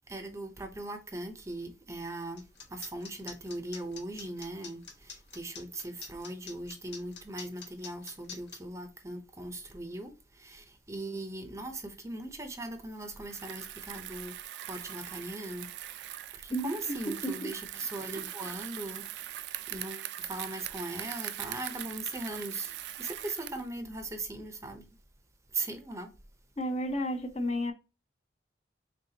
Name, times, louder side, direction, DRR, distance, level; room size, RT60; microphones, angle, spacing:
voice 1, 0.1-14.4 14.7-15.7 16.3-19.1 19.7-24.9 25.5-26.1, right 2 dB, 15° right, 0.5 m, -39 dB
sound 1, 2.4-8.6, left 5 dB, 70° left, 1.0 m, -45 dB
Bicycle, 13.2-23.7, right 13 dB, 65° right, 0.3 m, -41 dB
voice 2, 16.5-17.0 17.2-17.5 26.6-27.7, equal, 35° left, 0.5 m, -32 dB
3.9 x 3.5 x 2.7 m
head